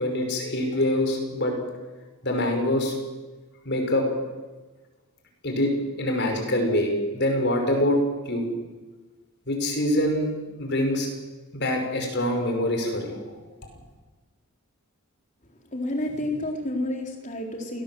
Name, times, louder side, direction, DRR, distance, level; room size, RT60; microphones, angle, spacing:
voice 1, 0.0-1.5 2.2-2.9 3.7-4.0 5.4-5.7 6.0-8.0 8.3-8.5 9.5-10.3 10.6-11.1 11.5-13.2, left 1 dB, 50° left, 3 dB, 5.6 m, -24 dB
voice 2, 15.7-17.8, left 1 dB, 35° left, 2 dB, 3.9 m, -30 dB
28.0 x 18.5 x 7.9 m, 1.2 s
head